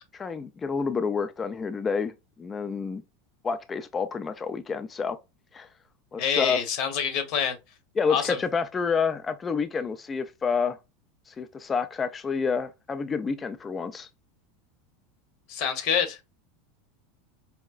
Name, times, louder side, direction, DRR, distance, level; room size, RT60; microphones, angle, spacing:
voice 1, 0.1-2.1 2.4-3.0 3.4-5.2 5.5-5.7 6.1-6.6 8.0-10.8 11.3-14.1, left 5 dB, 20° left, 0.3 m, -28 dB
voice 2, 6.2-7.6 8.1-8.4 15.5-16.2, left 7 dB, 55° left, 0.9 m, -26 dB
4.4 x 2.1 x 2.3 m
supercardioid pair, 140°, 0 cm